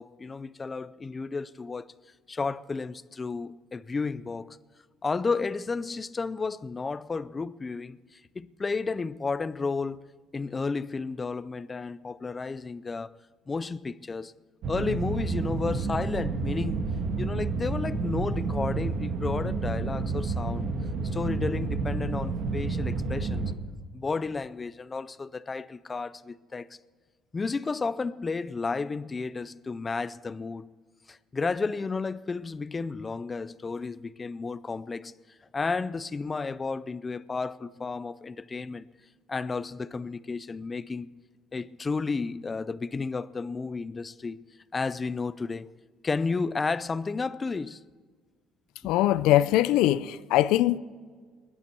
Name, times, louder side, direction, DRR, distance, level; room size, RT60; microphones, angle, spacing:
voice 1, 0.0-1.9 2.3-4.6 5.0-10.0 10.3-13.1 13.5-14.3 14.7-16.9 17.2-20.8 21.1-23.6 23.9-26.7 27.3-30.7 31.1-35.1 35.5-38.9 39.3-41.1 41.5-44.5 44.7-45.7 46.0-47.8 48.8-48.9, left 4 dB, 20° left, 0.4 m, -32 dB
sound 1, 14.6-23.5, right 3 dB, 60° right, 1.6 m, -30 dB
voice 2, 48.8-50.8, left 14 dB, 85° left, 0.5 m, -22 dB
21.5 x 11.5 x 4.5 m
cardioid pair, 140°, 0 cm